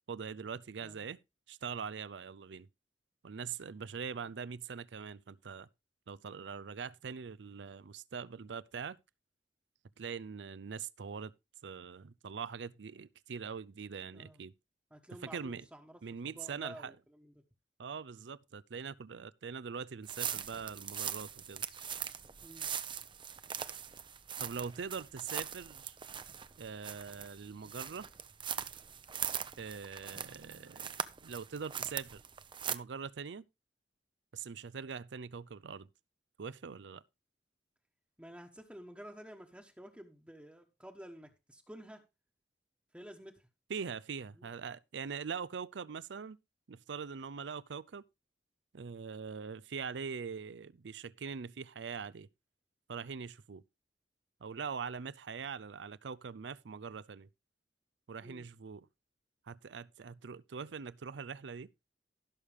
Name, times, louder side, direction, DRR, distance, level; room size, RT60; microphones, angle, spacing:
voice 1, 0.1-1.2 1.5-2.7 3.2-5.7 6.1-9.0 10.0-11.3 11.6-14.5 15.2-15.6 16.0-17.0 17.8-21.6 24.4-26.0 26.6-28.1 29.6-30.9 31.2-32.2 32.7-33.4 34.3-35.9 36.4-37.0 43.7-46.4 46.7-48.0 48.7-52.3 52.9-53.6 54.4-57.3 58.1-58.9 59.5-61.7, right 6 dB, 80° right, 0.5 m, -42 dB
voice 2, 14.1-14.4 14.9-16.0 16.3-17.3 22.4-22.7 38.2-42.0 42.9-43.5 44.3-44.5 58.2-58.5, equal, 5° right, 1.2 m, -51 dB
sound 1, 20.1-32.8, right 8 dB, 30° right, 0.6 m, -41 dB
16.0 x 6.6 x 3.5 m
head